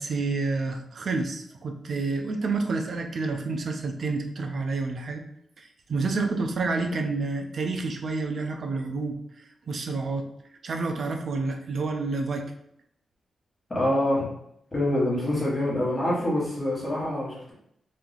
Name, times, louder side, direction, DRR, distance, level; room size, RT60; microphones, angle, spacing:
voice 1, 0.0-5.2 5.6-9.2 9.7-10.3 10.6-12.5, right 3 dB, 50° right, 4 dB, 0.5 m, -29 dB
voice 2, 13.7-14.3 14.7-17.5, left 1 dB, 20° left, -6 dB, 1.5 m, -25 dB
3.1 x 2.8 x 3.9 m, 0.74 s
wide cardioid pair, 135°, 0 cm